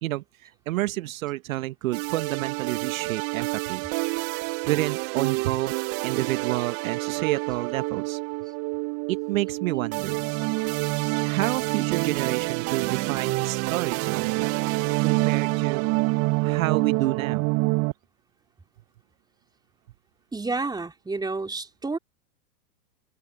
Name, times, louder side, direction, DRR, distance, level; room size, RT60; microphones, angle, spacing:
voice 1, 0.0-3.9 4.7-5.7 6.0-8.2 9.1-10.3 11.2-14.5 15.0-15.9 16.4-17.5, right 16 dB, 60° right, 1.1 m, -29 dB
sound 1, 1.9-17.9, right 26 dB, 30° right, 0.7 m, -27 dB
voice 2, 20.3-22.0, right 3 dB, 10° right, 4.0 m, -30 dB
hypercardioid pair, 105°, 46 cm